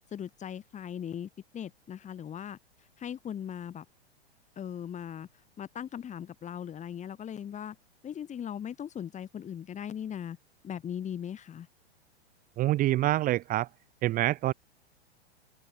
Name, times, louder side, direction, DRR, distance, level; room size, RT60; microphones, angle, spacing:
voice 1, 0.1-2.6 3.0-3.8 4.6-5.3 5.6-7.8 8.0-10.4 10.6-11.7, left 9 dB, 20° left, 4.9 m, -39 dB
voice 2, 12.6-13.7 14.0-14.5, right 15 dB, 25° right, 0.9 m, -26 dB
open air
figure-of-eight pair, 105°, 33 cm